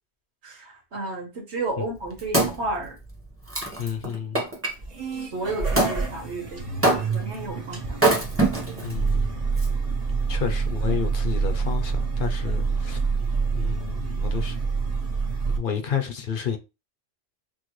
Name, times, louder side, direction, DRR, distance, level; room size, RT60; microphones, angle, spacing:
voice 1, 0.4-3.0 5.1-8.0, right 2 dB, 85° right, 1.7 m, -32 dB
Wood, 1.7-4.7 5.8-6.0 6.8-7.3 7.9-8.9 9.6-9.7, right 2 dB, 15° right, 1.0 m, -24 dB
voice 2, 3.8-4.4 8.8-9.5 10.3-13.0 13.5-14.6 15.5-16.6, left 8 dB, 55° left, 0.8 m, -30 dB
sound 1, 4.7-15.6, right 4 dB, 40° right, 1.1 m, -27 dB
6.2 x 2.2 x 3.1 m
omnidirectional pair, 1.1 m